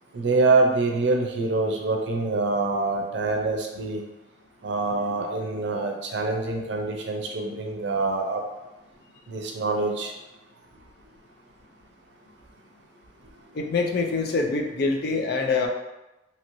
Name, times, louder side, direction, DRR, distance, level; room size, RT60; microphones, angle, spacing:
voice 1, 0.1-4.0 4.6-8.4 9.3-10.1, right 3 dB, 65° right, 2 dB, 0.5 m, -25 dB
voice 2, 13.5-15.7, left 4 dB, 55° left, 3 dB, 0.4 m, -25 dB
2.8 x 2.6 x 3.0 m, 0.99 s
head